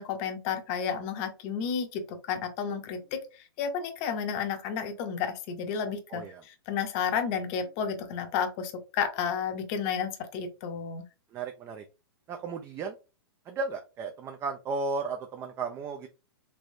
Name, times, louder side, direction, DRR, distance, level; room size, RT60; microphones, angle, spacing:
voice 1, 0.0-11.1, left 7 dB, 40° left, 6 dB, 0.7 m, -32 dB
voice 2, 6.1-6.4 11.3-11.8 12.3-13.0 13.5-16.1, right 4 dB, 20° right, 5 dB, 0.3 m, -34 dB
3.3 x 3.0 x 2.6 m, 0.31 s
hypercardioid pair, 120°, 13 cm